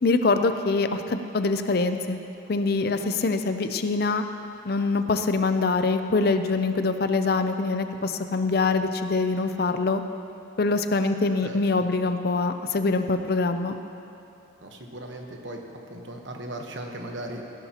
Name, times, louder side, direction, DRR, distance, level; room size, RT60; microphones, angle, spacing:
voice 1, 0.0-2.2 2.5-4.2 4.6-10.0 10.6-13.8, left 3 dB, 50° left, 8 dB, 0.5 m, -24 dB
voice 2, 11.4-11.8 14.6-15.6 15.9-17.5, right 1 dB, 70° right, 2 dB, 1.1 m, -37 dB
15.5 x 11.5 x 2.9 m, 2.8 s
head